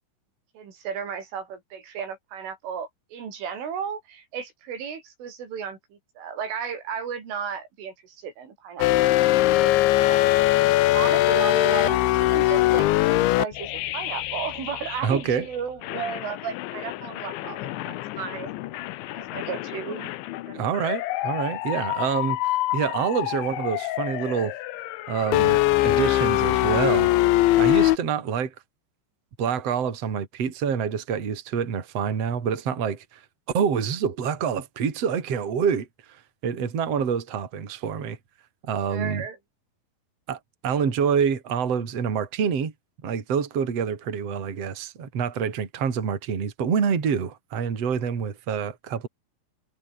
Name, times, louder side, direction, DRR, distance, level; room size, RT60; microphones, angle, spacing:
voice 1, 0.6-10.3 10.9-18.5 19.2-20.1 20.5-20.6 38.9-39.4, right 7 dB, 80° right, 7.3 m, -34 dB
sound 1, 8.8-15.4 15.8-28.0, left 16 dB, 80° left, 3.3 m, -23 dB
voice 2, 15.0-15.5 20.5-24.6 25.1-27.1 27.6-28.5 29.4-33.2 33.5-38.2 38.6-39.2 40.3-42.7 43.0-49.1, right 7 dB, 35° right, 3.7 m, -27 dB
omnidirectional pair, 5.5 m